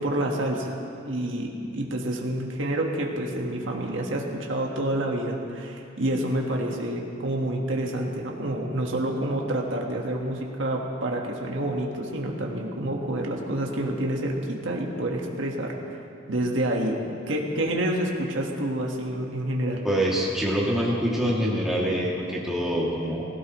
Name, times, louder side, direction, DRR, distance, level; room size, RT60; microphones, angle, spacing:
voice 1, 0.0-16.0 16.3-17.0 17.3-19.8, right 1 dB, 70° right, 0 dB, 1.4 m, -28 dB
voice 2, 19.8-23.3, equal, ahead, -6 dB, 2.3 m, -25 dB
17.0 x 16.5 x 3.1 m, 2.5 s
head